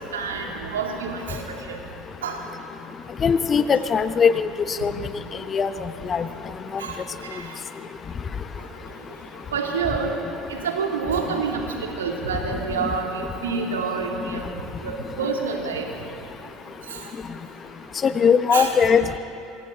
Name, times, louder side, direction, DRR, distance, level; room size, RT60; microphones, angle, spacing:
voice 1, 0.0-1.4 1.7-1.8 2.2-2.4 6.8-7.0 7.3-7.5 9.5-10.1 10.5-11.6 12.0-14.5 14.8-15.9 16.9-17.0 18.5-19.0, right 5 dB, 80° right, 1 dB, 2.7 m, -27 dB
voice 2, 3.2-4.9 5.5-5.7 6.0-6.3 18.0-19.2, left 6 dB, 35° left, 11 dB, 0.9 m, -20 dB
27.0 x 25.5 x 3.9 m, 2.7 s
figure-of-eight pair, 70°, 0 cm